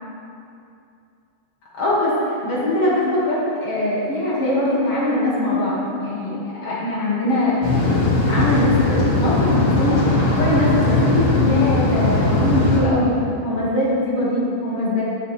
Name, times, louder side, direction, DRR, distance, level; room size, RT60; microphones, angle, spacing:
voice 1, 1.8-7.6 8.2-10.0 10.4-13.1 13.4-15.0, left 1 dB, 40° left, -7 dB, 2.5 m, -21 dB
sound 1, 7.6-12.8, left 2 dB, 65° left, 3.4 m, -19 dB
17.5 x 8.2 x 3.5 m, 2.6 s
omnidirectional pair, 5.3 m